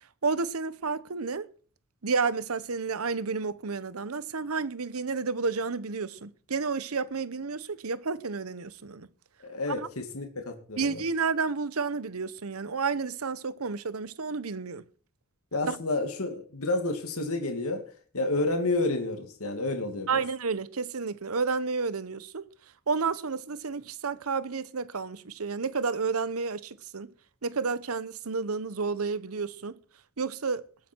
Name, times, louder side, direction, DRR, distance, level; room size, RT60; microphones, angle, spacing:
voice 1, 0.2-1.5 2.0-9.1 9.8-9.9 10.8-14.8 15.6-15.8 20.1-22.4 22.9-27.1 27.4-29.8 30.2-30.7, right 4 dB, 80° right, 0.9 m, -31 dB
voice 2, 9.4-11.0 15.5-17.9 18.1-20.1, left 2 dB, 85° left, 2.4 m, -30 dB
20.5 x 8.8 x 4.6 m
head